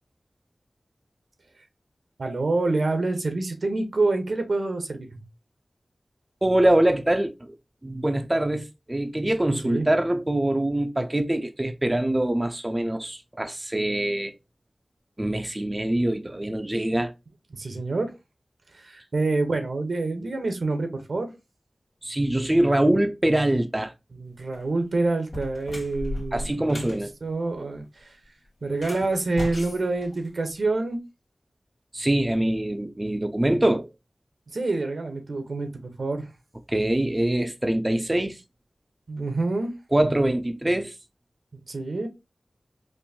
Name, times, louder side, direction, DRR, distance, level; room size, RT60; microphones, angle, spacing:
voice 1, 2.2-5.2 9.6-9.9 17.6-18.1 18.7-21.3 24.2-26.9 27.2-28.1 28.6-31.0 34.5-35.7 36.0-36.3 39.1-39.7 41.7-42.1, right 3 dB, 80° right, 0.8 m, -27 dB
voice 2, 6.4-7.5 7.8-14.3 15.2-17.1 22.0-23.9 26.3-27.1 31.9-33.9 36.7-38.4 39.9-40.9, right 1 dB, 25° right, 0.4 m, -24 dB
sound 1, 24.4-24.7 25.2-27.0 28.7-30.7, left 1 dB, 85° left, 1.3 m, -36 dB
4.4 x 2.5 x 2.7 m
wide cardioid pair, 55°, 0 cm